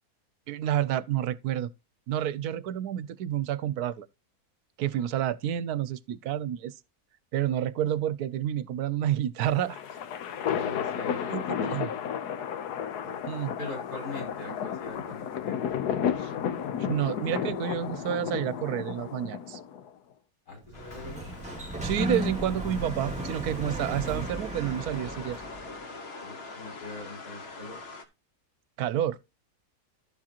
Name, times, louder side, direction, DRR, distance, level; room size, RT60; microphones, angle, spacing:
voice 1, 0.5-1.7 2.1-4.1 4.8-6.7 7.3-9.8 11.3-11.9 13.3-13.5 16.2-16.3 16.8-19.6 21.8-25.4 28.8-29.2, right 11 dB, 80° right, 1.1 m, -29 dB
sound 1, 9.4-19.9, left 8 dB, 85° left, 1.4 m, -32 dB
voice 2, 10.4-12.0 13.0-13.2 13.6-15.9 20.5-21.2 26.2-27.8, left 2 dB, 65° left, 5.9 m, -42 dB
Sliding door, 20.6-25.8, equal, 5° right, 1.8 m, -35 dB
sound 2, 20.7-28.0, left 3 dB, 45° left, 1.3 m, -44 dB
12.0 x 7.3 x 2.9 m
omnidirectional pair, 1.6 m